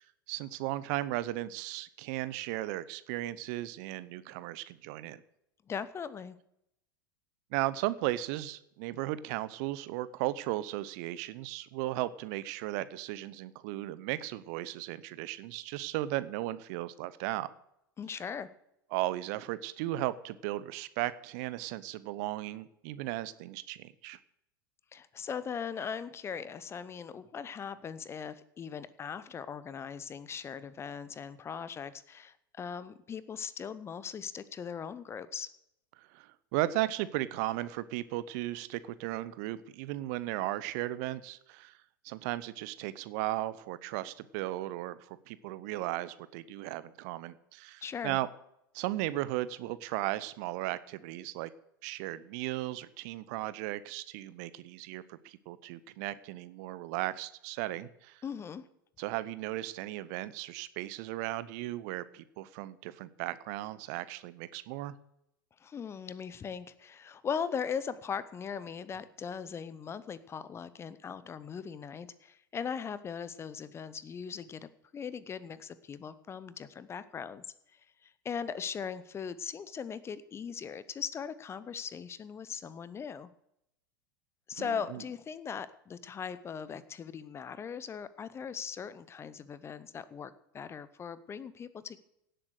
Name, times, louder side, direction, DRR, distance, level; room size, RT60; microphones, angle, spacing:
voice 1, 0.0-5.2 7.5-17.5 18.9-24.2 36.0-41.8 42.0-48.3 48.7-51.5 51.8-58.2 59.0-65.0 84.6-85.0, right 16 dB, 50° right, 16 dB, 0.7 m, -36 dB
voice 2, 5.7-6.4 18.0-18.5 24.9-35.5 47.8-48.2 58.2-58.7 65.6-77.4 78.0-83.3 84.5-92.0, left 7 dB, 20° left, 16 dB, 0.8 m, -39 dB
17.0 x 7.8 x 6.5 m, 0.80 s
figure-of-eight pair, 85°, 12 cm